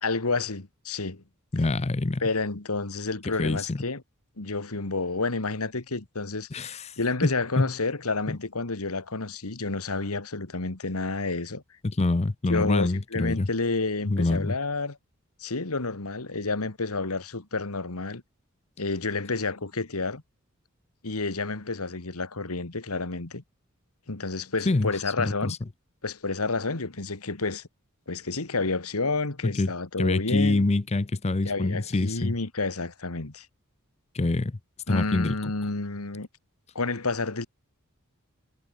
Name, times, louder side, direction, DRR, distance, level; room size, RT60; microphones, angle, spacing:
voice 1, 0.0-1.2 2.2-4.0 4.4-11.6 12.5-15.0 15.4-18.2 18.8-20.2 21.0-23.4 24.1-25.6 26.0-27.7 28.1-30.7 31.4-33.5 34.9-36.3 36.8-37.5, left 3 dB, 90° left, 1.9 m, -30 dB
voice 2, 1.5-2.2 3.4-3.8 6.5-6.9 7.2-7.7 8.3-8.4 11.8-13.5 14.1-14.6 24.7-24.9 25.2-25.6 29.4-29.7 30.0-32.3 34.1-34.6 34.9-35.3, left 2 dB, 30° left, 0.6 m, -25 dB
head